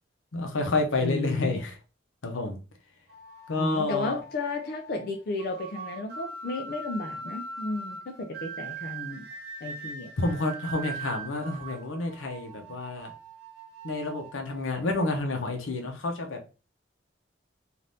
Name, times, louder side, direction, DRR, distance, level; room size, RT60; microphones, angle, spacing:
voice 1, 0.3-1.7 2.2-2.6 3.5-4.2 10.2-13.1 13.8-16.4, left 2 dB, 85° left, 0.7 m, -29 dB
voice 2, 1.0-1.6 3.6-9.2 9.6-10.1, left 2 dB, 50° left, 0.4 m, -33 dB
sound 1, 3.1-15.9, right 4 dB, 50° right, 1.0 m, -42 dB
2.6 x 2.6 x 3.3 m
head